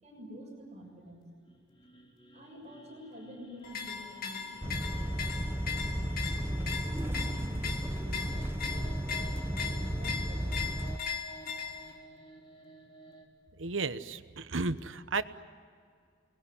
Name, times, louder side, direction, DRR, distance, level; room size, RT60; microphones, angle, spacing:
voice 1, 0.0-1.3 2.3-10.5, equal, 35° right, 0 dB, 6.6 m, -49 dB
sound 1, 1.3-13.3, right 2 dB, 30° left, 3.5 m, -54 dB
sound 2, 3.6-11.9, left 6 dB, 50° left, 2.4 m, -39 dB
sound 3, 4.6-11.0, right 1 dB, 10° right, 0.8 m, -34 dB
voice 2, 13.6-15.2, right 3 dB, 85° right, 12 dB, 1.1 m, -33 dB
29.0 x 20.5 x 9.8 m, 2.2 s
head